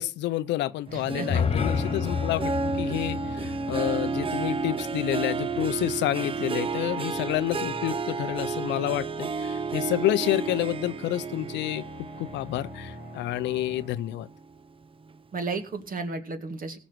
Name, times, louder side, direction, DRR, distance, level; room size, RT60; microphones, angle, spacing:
voice 1, 0.0-11.8 12.2-14.3, left 14 dB, 80° left, 0.6 m, -29 dB
voice 2, 0.9-1.4 15.3-16.8, right 3 dB, 50° right, 2.2 m, -33 dB
sound 1, 0.9-13.9, right 1 dB, 75° right, 5.7 m, -44 dB
sound 2, 1.1-5.2, left 7 dB, 35° left, 0.6 m, -31 dB
Harp, 1.1-13.8 14.2-14.6 15.1-15.2, right 4 dB, 30° right, 0.6 m, -32 dB
17.0 x 6.3 x 6.0 m
supercardioid pair, 65°, 18 cm